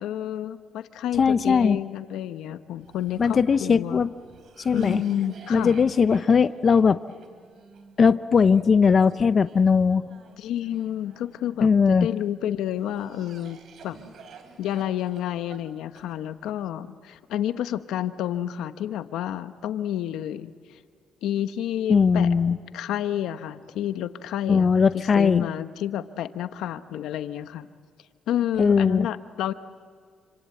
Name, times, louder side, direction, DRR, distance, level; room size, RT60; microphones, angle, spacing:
voice 1, 0.0-4.0 4.7-5.8 10.4-14.0 14.6-20.5 21.2-22.3 22.7-24.7 24.9-27.7 28.3-29.5, left 11 dB, 85° left, 11 dB, 1.0 m, -30 dB
voice 2, 1.2-1.8 3.2-4.1 4.6-5.0 5.5-7.0 8.0-10.0 11.6-12.1 21.9-22.6 24.5-25.5 28.6-29.1, left 5 dB, 45° left, 13 dB, 0.7 m, -19 dB
Cough, 2.8-12.0 12.6-16.5, right 5 dB, 65° right, 4.0 m, -51 dB
29.0 x 26.0 x 7.8 m, 2.1 s
cardioid pair, 90°, 0 cm